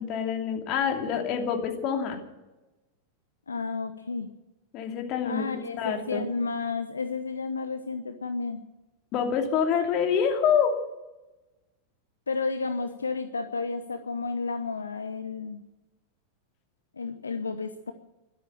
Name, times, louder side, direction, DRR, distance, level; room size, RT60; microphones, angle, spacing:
voice 1, 0.0-2.2 4.7-6.2 9.1-10.7, left 7 dB, 40° left, 3 dB, 2.8 m, -26 dB
voice 2, 3.5-4.3 5.2-8.6 12.3-15.6 17.0-17.9, left 4 dB, 75° left, 9 dB, 0.8 m, -32 dB
12.5 x 12.5 x 9.0 m, 1.0 s
figure-of-eight pair, 90°, 0 cm